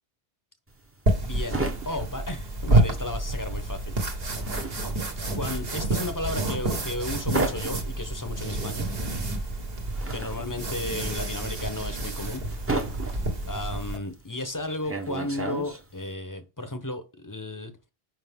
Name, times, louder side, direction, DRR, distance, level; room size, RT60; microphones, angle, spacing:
sound 1, 0.7-3.2 3.5-16.1, right 2 dB, 15° right, 0.7 m, -34 dB
voice 1, 1.1-4.0 5.3-8.9 10.1-12.4 13.1-17.7, left 2 dB, 20° left, 0.8 m, -34 dB
sound 2, 1.1-14.0, right 2 dB, 70° right, 1.6 m, -29 dB
5.8 x 5.1 x 3.5 m
omnidirectional pair, 1.0 m